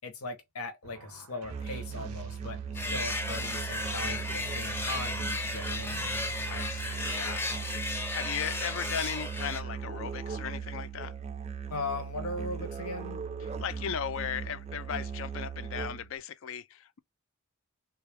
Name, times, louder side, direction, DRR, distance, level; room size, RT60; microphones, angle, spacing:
voice 1, 0.0-6.2 11.7-13.2, left 3 dB, 80° left, 0.8 m, -39 dB
sound 1, 0.8-7.6, right 6 dB, 85° right, 0.5 m, -51 dB
Musical instrument, 1.4-16.2, right 6 dB, 30° right, 0.3 m, -38 dB
sound 2, 2.7-9.6, left 2 dB, 10° left, 0.6 m, -34 dB
voice 2, 6.5-11.1 13.4-17.0, left 8 dB, 60° left, 0.4 m, -37 dB
3.5 x 2.3 x 3.3 m
head